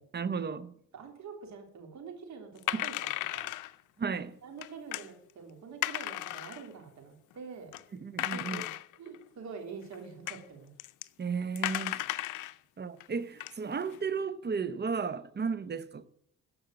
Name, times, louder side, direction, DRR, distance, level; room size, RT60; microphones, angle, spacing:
voice 1, 0.1-0.8 4.0-4.4 8.0-8.6 11.2-12.1 12.8-16.1, right 5 dB, 35° right, 0.9 m, -34 dB
voice 2, 0.9-3.5 4.4-7.7 8.3-8.7 9.0-10.7, right 5 dB, 65° right, 3.4 m, -46 dB
sound 1, 2.6-3.7 4.6-5.1 5.8-6.7 7.3-7.4 7.7-7.8 8.2-9.2 9.9-10.0 10.3-10.4 10.8-11.1 11.6-12.6 13.0-13.1 13.4-14.0, left 16 dB, 85° left, 0.6 m, -35 dB
14.0 x 5.4 x 7.8 m
cardioid pair, 90°, 30 cm